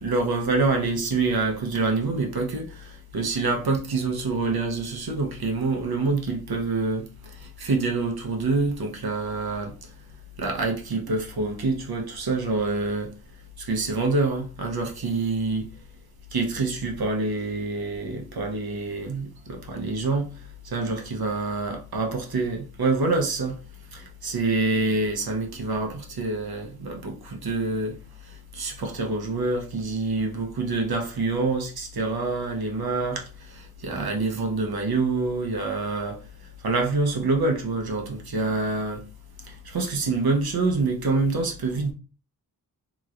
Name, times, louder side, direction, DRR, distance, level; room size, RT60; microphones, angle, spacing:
voice 1, 0.0-7.1 7.6-9.7 10.4-13.1 13.6-15.7 16.3-20.3 20.6-23.6 23.9-28.0 28.5-36.2 36.6-39.0 39.5-41.9, right 3 dB, 75° right, 0.8 m, -26 dB
3.0 x 3.0 x 2.4 m
wide cardioid pair, 65°, 37 cm